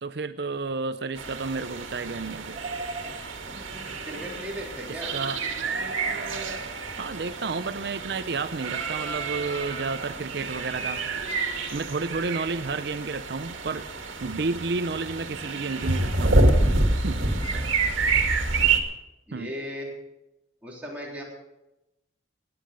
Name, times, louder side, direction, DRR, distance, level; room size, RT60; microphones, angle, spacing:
voice 1, 0.0-2.6 5.1-5.4 7.0-11.0 11.7-13.9 14.2-16.4 17.0-17.2 19.3-19.5, right 4 dB, 55° right, 12 dB, 0.5 m, -31 dB
sound 1, 1.2-18.8, right 3 dB, 90° right, 1.8 m, -28 dB
voice 2, 4.0-5.1 17.5-17.6 19.3-19.9 20.6-21.2, equal, 10° right, -5 dB, 3.5 m, -36 dB
17.5 x 9.5 x 5.1 m, 0.94 s
head